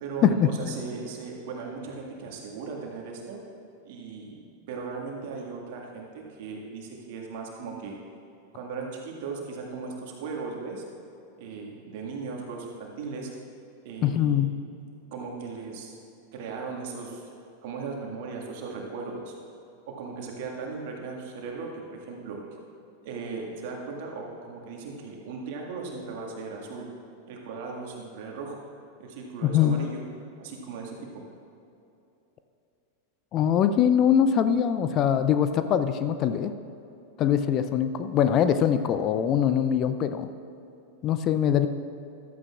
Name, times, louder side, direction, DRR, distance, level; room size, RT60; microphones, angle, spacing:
voice 1, 0.0-3.4 3.9-4.4 4.7-8.0 8.5-10.8 11.4-13.3 13.8-14.4 15.1-15.9 16.3-17.3 17.6-19.3 19.9-22.6 23.0-26.9 27.3-28.6 29.0-30.0 30.4-31.2, right 4 dB, 50° right, 0 dB, 1.9 m, -37 dB
voice 2, 14.0-14.5 29.4-29.8 33.3-36.5 37.2-40.3 41.0-41.7, left 9 dB, 35° left, 10 dB, 0.5 m, -23 dB
14.5 x 13.0 x 2.5 m, 2.7 s
figure-of-eight pair, 90°, 0 cm